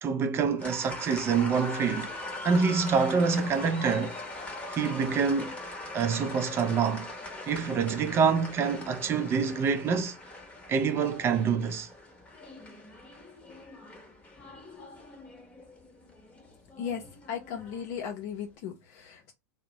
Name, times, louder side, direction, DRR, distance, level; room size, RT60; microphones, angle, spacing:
voice 1, 0.0-2.1 2.4-4.2 4.7-5.5 5.9-7.1 7.5-10.2 10.7-11.9, right 5 dB, 30° right, 0.4 m, -26 dB
sound 1, 0.6-18.3, left 2 dB, 15° left, 0.9 m, -42 dB
voice 2, 17.3-19.3, left 8 dB, 55° left, 0.6 m, -36 dB
2.5 x 2.0 x 2.8 m
hypercardioid pair, 105°, 9 cm